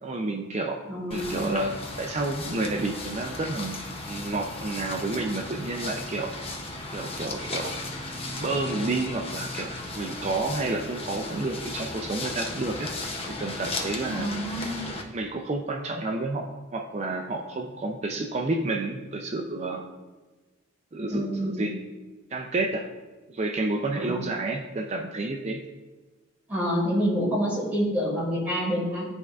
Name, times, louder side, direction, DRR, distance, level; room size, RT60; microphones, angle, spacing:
voice 1, 0.0-0.8 1.1-3.8 4.1-6.3 6.9-7.7 8.4-12.9 13.3-14.3 15.1-16.5 16.7-19.8 20.9-21.7 22.3-22.9 23.3-25.6, right 2 dB, 30° right, 2 dB, 0.4 m, -30 dB
voice 2, 0.9-1.6 14.1-14.9 21.1-21.7 24.0-24.2 26.5-29.1, equal, 10° right, -7 dB, 2.3 m, -27 dB
sound 1, 1.1-15.0, left 2 dB, 30° left, 0.7 m, -35 dB
12.5 x 4.5 x 2.4 m, 1.2 s
head